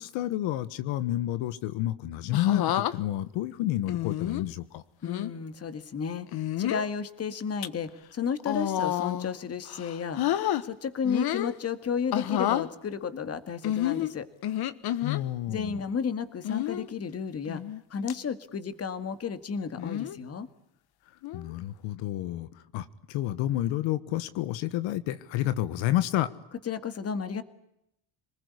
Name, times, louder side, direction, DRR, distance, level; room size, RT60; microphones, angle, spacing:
voice 1, 0.0-4.8 15.0-15.8 21.3-26.3, left 14 dB, 80° left, 14 dB, 1.6 m, -30 dB
sound 1, 2.3-2.9 3.9-4.4 5.0-5.3 6.3-6.9 7.4-7.7 8.4-9.3 9.7-10.6 11.0-11.5 12.1-12.7 13.6-15.2 16.4-16.9 17.5-17.8 18.1-18.2 19.8-20.2 21.2-21.5, left 12 dB, 55° left, 1.5 m, -29 dB
voice 2, 5.0-14.3 15.5-17.6 17.9-20.5 26.7-27.4, left 6 dB, 30° left, 12 dB, 2.1 m, -33 dB
27.5 x 20.5 x 9.8 m, 0.81 s
cardioid pair, 130°, 45 cm